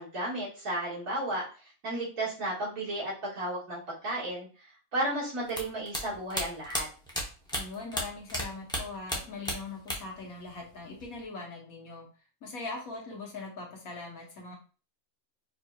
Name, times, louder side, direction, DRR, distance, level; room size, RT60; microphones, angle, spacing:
voice 1, 0.0-6.9, right 1 dB, 75° right, -7 dB, 2.1 m, -34 dB
sound 1, 5.5-8.4 8.7-10.2 10.5-11.2, equal, 5° left, 0.5 m, -33 dB
voice 2, 7.5-12.1 12.4-14.6, left 3 dB, 85° left, 0 dB, 1.5 m, -41 dB
4.8 x 2.7 x 2.3 m, 0.37 s
omnidirectional pair, 1.5 m